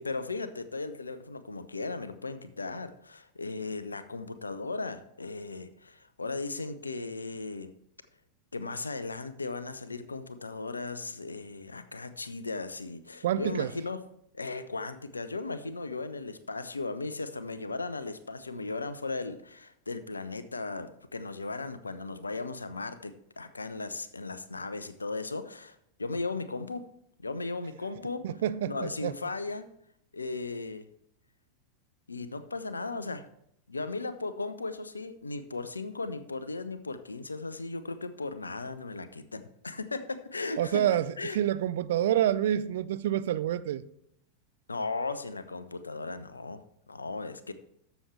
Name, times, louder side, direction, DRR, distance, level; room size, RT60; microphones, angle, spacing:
voice 1, 0.0-7.7 8.5-14.0 14.3-26.9 27.2-28.3 28.6-29.7 30.1-30.9 32.1-33.2 33.7-40.8 41.2-41.4 44.7-47.5, left 3 dB, 80° left, 0.7 m, -37 dB
voice 2, 13.2-13.7 28.2-29.1 40.6-43.8, right 11 dB, 55° right, 0.5 m, -28 dB
13.0 x 7.0 x 3.3 m
figure-of-eight pair, 90°, 0 cm